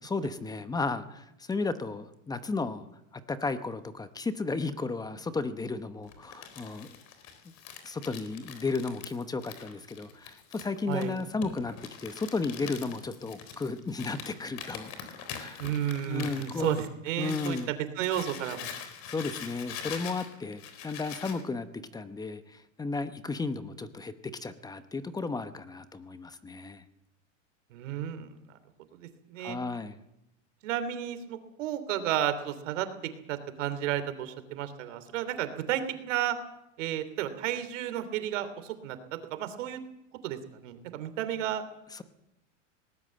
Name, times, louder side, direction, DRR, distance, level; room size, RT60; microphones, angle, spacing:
voice 1, 0.0-2.8 3.3-6.9 7.8-11.7 12.0-14.9 15.4-15.6 16.1-16.8 17.2-17.7 19.1-24.1 24.4-26.8 29.4-30.0 41.9-42.0, left 3 dB, 10° left, 11 dB, 0.9 m, -34 dB
Crumpling crinkling, 6.1-17.7 18.0-21.4, left 8 dB, 45° left, 3.8 m, -43 dB
voice 2, 15.6-18.8 27.7-28.6 28.9-29.6 30.6-36.4 36.8-39.8 40.2-41.6, right 11 dB, 70° right, 10 dB, 3.2 m, -33 dB
19.5 x 19.0 x 7.7 m, 0.85 s
supercardioid pair, 145°, 38 cm